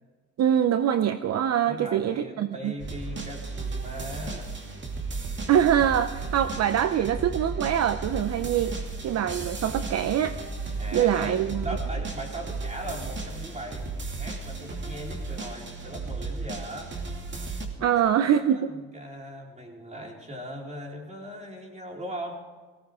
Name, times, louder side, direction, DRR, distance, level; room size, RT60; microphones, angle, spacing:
voice 1, 0.4-2.7 5.5-8.8 9.0-10.4 10.9-11.6 17.8-18.7, right 9 dB, 60° right, 11 dB, 0.7 m, -24 dB
voice 2, 1.7-4.5 10.8-16.9 17.7-22.5, equal, 25° right, -1 dB, 4.1 m, -39 dB
sound 1, 2.8-17.7, right 3 dB, 40° right, 2.5 m, -34 dB
18.0 x 17.0 x 3.7 m, 1.4 s
cardioid pair, 90°, 30 cm